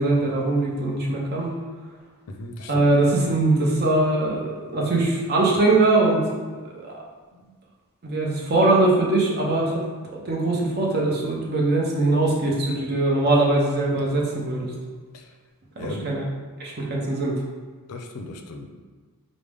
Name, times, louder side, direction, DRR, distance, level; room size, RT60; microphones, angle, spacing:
voice 1, 0.0-1.5 2.7-6.2 6.5-6.9 8.0-9.7 10.0-14.7 15.8-16.2 16.6-17.4, right 2 dB, 45° right, -2 dB, 0.7 m, -21 dB
voice 2, 2.3-2.9 7.3-7.5 15.1-15.3 15.8-16.1 17.9-18.7, left 2 dB, 70° left, 4 dB, 0.4 m, -37 dB
4.9 x 2.0 x 3.4 m, 1.4 s
head